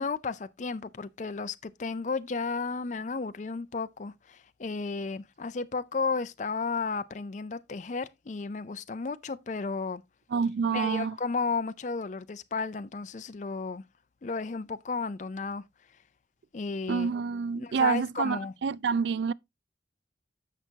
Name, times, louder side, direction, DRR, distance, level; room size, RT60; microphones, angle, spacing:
voice 1, 0.0-10.0 10.7-13.8 14.2-15.6 16.5-17.1 17.5-18.5, left 4 dB, 40° left, 0.4 m, -33 dB
voice 2, 10.3-11.2 16.9-19.3, right 5 dB, 70° right, 0.4 m, -28 dB
10.5 x 6.9 x 2.8 m
head